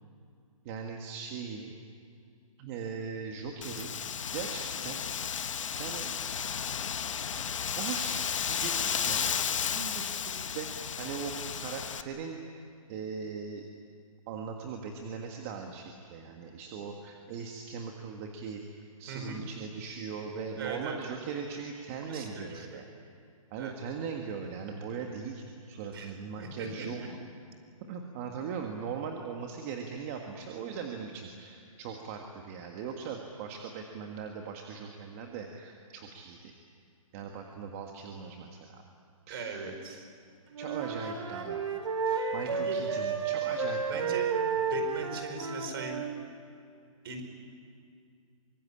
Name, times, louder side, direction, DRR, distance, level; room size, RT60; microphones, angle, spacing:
voice 1, 0.6-1.7 2.6-3.9 4.3-5.0 5.8-6.3 7.3-9.3 9.6-12.4 12.9-13.7 14.3-22.8 23.5-27.2 27.9-36.5 37.1-38.8 39.3-39.7 40.6-41.6 42.3-44.2, right 6 dB, 25° right, 2 dB, 1.6 m, -40 dB
Wind, 3.6-12.0, left 7 dB, 60° left, 1.2 m, -33 dB
voice 2, 19.1-19.4 20.6-21.1 22.1-22.8 23.6-23.7 25.9-27.1 39.3-40.0 42.0-42.8 43.9-44.3 44.7-46.0 47.0-47.2, right 4 dB, 40° right, 5 dB, 4.8 m, -40 dB
Wind instrument woodwind instrument, 40.5-46.2, right 5 dB, 60° right, 3.7 m, -32 dB
25.0 x 22.0 x 9.9 m, 2.4 s
hypercardioid pair, 165°, 18 cm